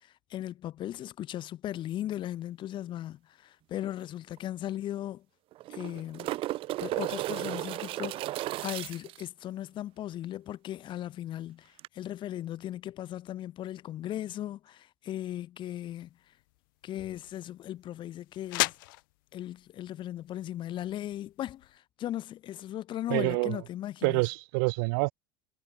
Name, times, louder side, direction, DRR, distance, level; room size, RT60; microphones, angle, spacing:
voice 1, 0.0-5.2 5.7-6.4 6.8-16.1 16.8-18.7 19.3-24.2, left 12 dB, 45° left, 4.3 m, -37 dB
sound 1, 4.0-4.1 4.4-4.5 5.5-9.2 11.8-11.9, right 16 dB, 55° right, 2.7 m, -34 dB
sound 2, 15.8-21.8, left 23 dB, 80° left, 6.0 m, -39 dB
voice 2, 23.1-23.6 24.0-25.1, right 32 dB, 75° right, 1.8 m, -27 dB
supercardioid pair, 110°, 11 cm